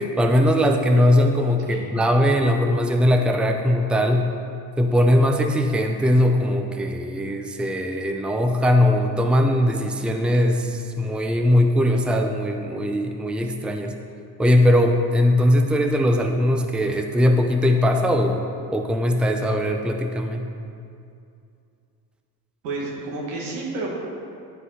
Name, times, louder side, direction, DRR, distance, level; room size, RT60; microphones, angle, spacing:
voice 1, 0.0-4.3 4.8-13.9 14.4-18.5 18.7-20.5, left 1 dB, ahead, 4 dB, 0.6 m, -20 dB
voice 2, 22.6-23.9, right 3 dB, 85° right, -3 dB, 2.1 m, -30 dB
10.0 x 5.3 x 4.8 m, 2.5 s
hypercardioid pair, 70°, 47 cm